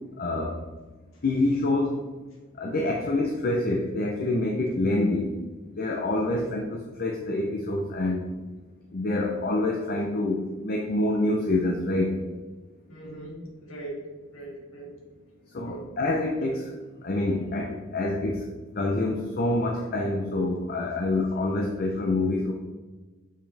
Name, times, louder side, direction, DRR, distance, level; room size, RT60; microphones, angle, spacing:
voice 1, 0.2-0.6 1.2-1.9 2.6-5.3 5.8-8.2 8.9-12.2 15.5-16.7 17.0-18.5 18.8-22.5, left 2 dB, 45° left, 1 dB, 0.7 m, -26 dB
voice 2, 12.9-14.9 15.6-15.9, right 2 dB, 75° left, -2 dB, 2.1 m, -41 dB
6.8 x 6.1 x 3.4 m, 1.3 s
head